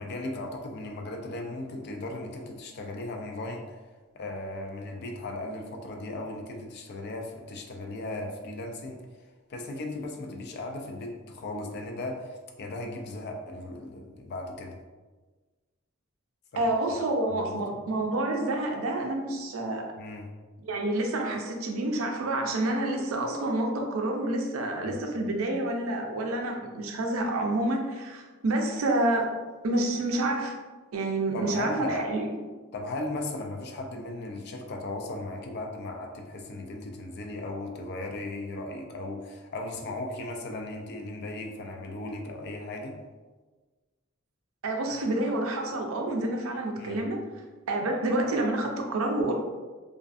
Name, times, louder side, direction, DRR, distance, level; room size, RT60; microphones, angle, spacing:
voice 1, 0.0-3.9 4.1-14.8 16.5-16.7 17.3-17.8 20.0-20.3 24.8-25.0 31.3-32.1 32.7-43.0 46.8-47.1, left 2 dB, 55° left, 2 dB, 0.4 m, -37 dB
voice 2, 16.6-19.9 20.6-29.3 29.6-30.5 30.9-32.2 44.6-47.2 47.7-49.3, right 2 dB, 90° right, 2 dB, 0.4 m, -28 dB
2.4 x 2.4 x 2.4 m, 1.3 s
head